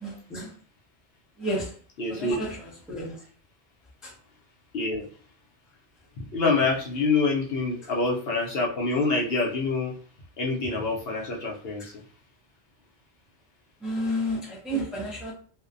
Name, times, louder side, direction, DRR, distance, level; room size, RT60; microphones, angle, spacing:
voice 1, 0.0-0.5 1.4-1.7 2.1-3.2 4.0-4.1 7.8-7.9 11.8-11.9 13.8-15.3, equal, ahead, -4 dB, 0.5 m, -31 dB
voice 2, 2.0-2.4 4.7-5.0 6.3-9.9 10.4-11.9 14.7-14.9, left 3 dB, 65° left, -2 dB, 0.8 m, -26 dB
2.5 x 2.1 x 2.4 m, 0.43 s
omnidirectional pair, 1.1 m